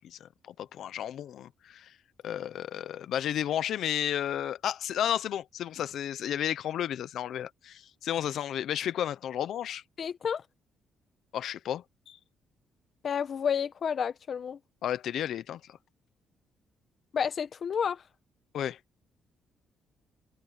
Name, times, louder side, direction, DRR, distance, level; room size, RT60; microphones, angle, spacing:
voice 1, 0.0-1.9 2.2-9.8 11.3-12.2 14.8-15.8 18.5-18.8, left 10 dB, 70° left, 1.0 m, -32 dB
voice 2, 10.0-10.4 13.0-14.6 17.1-18.0, left 7 dB, 50° left, 1.4 m, -30 dB
cardioid pair, 90°, 0 cm